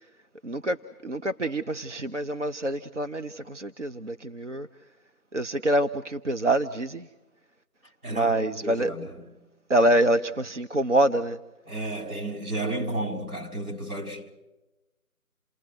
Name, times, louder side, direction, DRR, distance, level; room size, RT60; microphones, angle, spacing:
voice 1, 0.4-0.8 1.0-4.7 5.3-7.0 8.1-8.9 9.7-11.4, right 1 dB, 55° right, 0.9 m, -25 dB
voice 2, 8.0-9.3 11.7-14.3, right 1 dB, 75° right, 5.1 m, -32 dB
29.0 x 19.0 x 7.8 m
figure-of-eight pair, 175°, 44 cm